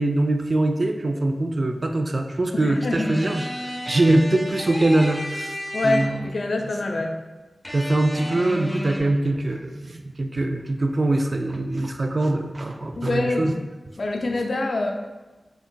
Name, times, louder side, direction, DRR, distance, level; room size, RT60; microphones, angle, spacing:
voice 1, 0.0-5.6 5.8-6.3 7.7-13.5, right 2 dB, 55° right, 5 dB, 0.3 m, -23 dB
voice 2, 2.5-3.1 5.7-7.2 13.0-13.6 14.0-14.9, left 2 dB, 75° left, 3 dB, 0.3 m, -25 dB
sound 1, 2.9-6.4 7.6-9.0, equal, 15° left, 0.8 m, -33 dB
3.7 x 3.3 x 2.2 m, 1.2 s
cardioid pair, 45°, 0 cm